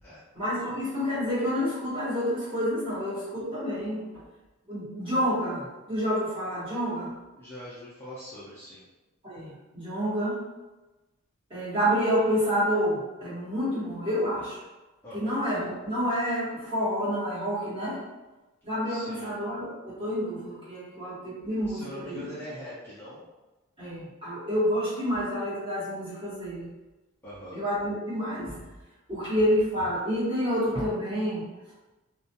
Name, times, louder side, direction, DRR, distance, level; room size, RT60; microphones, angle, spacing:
voice 1, 0.3-4.0 4.7-7.1 9.2-10.4 11.5-14.6 15.1-18.0 18.6-22.3 23.8-26.7 27.5-28.6 29.1-31.4, equal, 25° right, -10 dB, 1.1 m, -28 dB
voice 2, 7.4-8.8 15.0-15.3 18.9-19.3 21.6-23.2 27.2-27.6, equal, 10° left, -10 dB, 0.4 m, -42 dB
2.3 x 2.2 x 2.7 m, 1.1 s
head